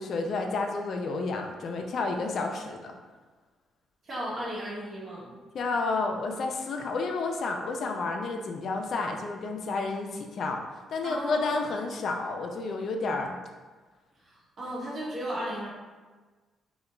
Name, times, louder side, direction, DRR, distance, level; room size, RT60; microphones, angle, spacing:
voice 1, 0.0-2.9 5.5-10.7 10.9-13.4 15.6-15.7, left 3 dB, 60° left, 3 dB, 0.3 m, -31 dB
voice 2, 4.1-5.3 11.0-11.5 14.6-15.7, equal, 45° right, -6 dB, 0.9 m, -34 dB
2.8 x 2.2 x 2.3 m, 1.3 s
cardioid pair, 90°, 0 cm